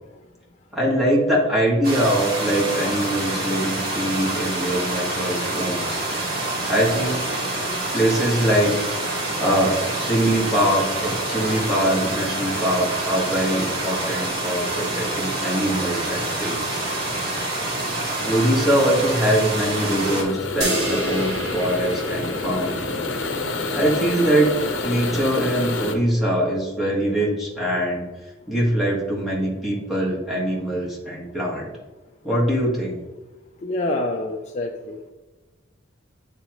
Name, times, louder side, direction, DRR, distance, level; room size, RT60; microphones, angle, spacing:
voice 1, 0.7-6.0 6.7-7.2 7.9-8.8 9.0-16.8 18.2-22.9 23.7-24.5 24.8-28.1 28.5-31.7 32.2-33.0, right 1 dB, ahead, -5 dB, 1.6 m, -23 dB
sound 1, 1.8-20.2, right 2 dB, 50° right, 1.5 m, -27 dB
sound 2, 10.3-25.9, left 3 dB, 70° left, 0.8 m, -30 dB
sound 3, 20.6-23.2, right 1 dB, 85° right, 2.0 m, -29 dB
voice 2, 33.6-35.0, left 2 dB, 35° left, 1 dB, 0.4 m, -26 dB
8.4 x 3.7 x 3.0 m, 1.2 s
head